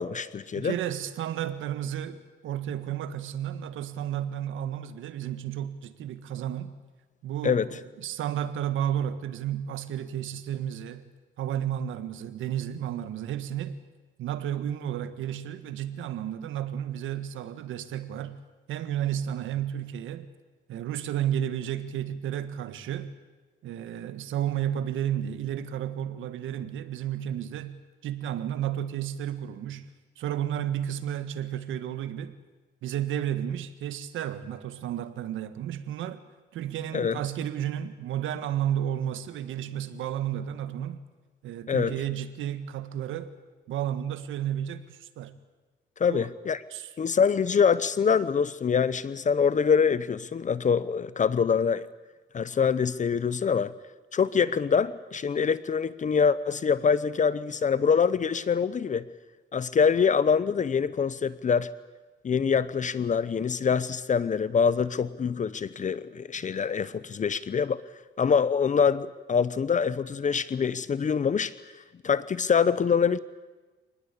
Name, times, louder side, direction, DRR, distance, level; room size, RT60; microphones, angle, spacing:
voice 1, 0.0-0.8 7.4-7.7 36.9-37.2 41.7-41.9 46.0-46.6 47.0-51.9 52.3-53.7 54.1-59.0 59.5-61.7 62.2-67.8 68.2-71.5 72.0-73.2, left 6 dB, 40° left, 0.8 m, -25 dB
voice 2, 0.5-6.8 7.2-11.1 11.4-13.8 14.2-18.4 18.7-20.3 20.7-23.1 23.6-29.9 30.2-32.3 32.8-36.2 36.5-41.0 41.4-43.3 43.7-45.4 46.1-46.2 46.7-46.9, right 10 dB, 80° right, 1.7 m, -32 dB
26.0 x 19.5 x 8.5 m
cardioid pair, 90°, 20 cm